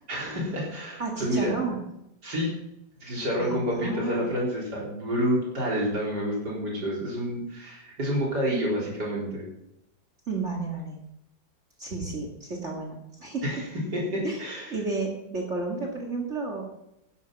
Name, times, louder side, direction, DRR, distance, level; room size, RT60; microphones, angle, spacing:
voice 1, 0.1-1.5 2.2-2.5 3.0-9.4 13.4-13.6 13.9-14.8, equal, 60° right, -4 dB, 4.5 m, -28 dB
voice 2, 1.0-1.8 3.4-4.3 10.3-11.0 11.8-13.5 14.2-14.4 14.7-16.6, right 3 dB, 40° right, 1 dB, 2.3 m, -32 dB
12.0 x 10.5 x 5.9 m, 0.85 s
omnidirectional pair, 2.0 m